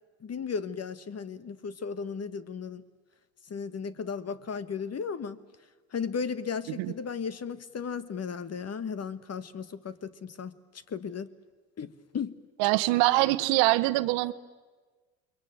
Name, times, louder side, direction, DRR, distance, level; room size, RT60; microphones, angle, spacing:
voice 1, 0.2-2.8 3.5-5.4 5.9-10.5 10.9-11.3 11.8-12.4, left 6 dB, 30° left, 15 dB, 1.5 m, -35 dB
voice 2, 12.6-14.3, right 19 dB, 65° right, 14 dB, 1.1 m, -24 dB
29.0 x 22.5 x 9.0 m, 1.4 s
hypercardioid pair, 75°, 49 cm